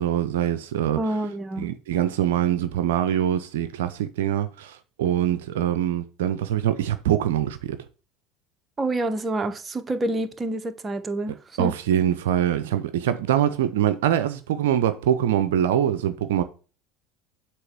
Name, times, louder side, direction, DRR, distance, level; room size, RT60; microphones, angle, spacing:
voice 1, 0.0-1.0 1.6-7.8 11.6-16.4, right 10 dB, 70° right, 0.6 m, -24 dB
voice 2, 1.0-1.7 8.8-11.7, right 2 dB, 20° right, 0.9 m, -28 dB
7.7 x 3.1 x 6.0 m
figure-of-eight pair, 70°, 0 cm